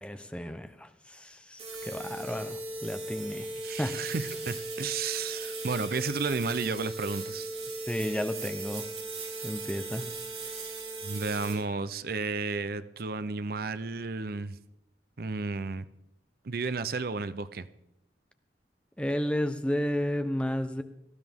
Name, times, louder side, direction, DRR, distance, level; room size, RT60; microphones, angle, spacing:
voice 1, 0.0-3.5 3.8-4.0 7.9-8.8 9.4-10.0 19.0-20.8, equal, 5° left, 8 dB, 0.8 m, -32 dB
sound 1, 1.6-11.5, right 2 dB, 35° right, 4.0 m, -37 dB
voice 2, 3.6-7.5 11.0-14.6 15.2-15.9 16.4-17.7, right 4 dB, 55° right, 13 dB, 0.6 m, -32 dB
18.5 x 14.0 x 3.6 m, 0.83 s
head